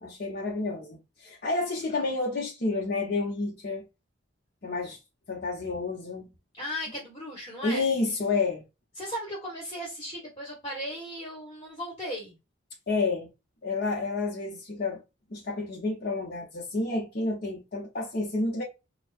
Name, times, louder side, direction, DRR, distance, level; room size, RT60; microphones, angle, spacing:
voice 1, 0.0-3.9 4.6-5.0 5.3-6.3 7.6-8.6 12.9-13.3 13.6-15.0 15.3-18.6, left 3 dB, 50° left, 1.0 m, -30 dB
voice 2, 6.5-7.9 9.0-12.3, equal, 30° left, 1.5 m, -36 dB
4.6 x 2.4 x 2.5 m
head